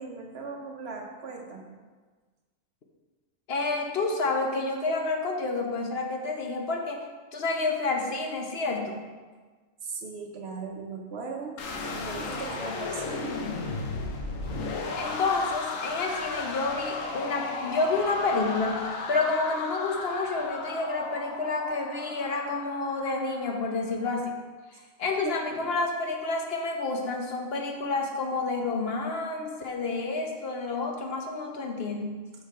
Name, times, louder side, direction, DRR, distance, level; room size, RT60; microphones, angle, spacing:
voice 1, 0.0-1.8 9.8-13.4 25.2-25.7, right 4 dB, 55° right, 2 dB, 0.9 m, -38 dB
voice 2, 3.5-7.0 7.3-9.0 15.0-24.3 25.0-32.2, left 3 dB, 55° left, 2 dB, 0.9 m, -29 dB
sound 1, 11.6-23.6, left 3 dB, 75° left, 1.1 m, -34 dB
5.8 x 5.4 x 4.2 m, 1.4 s
omnidirectional pair, 1.4 m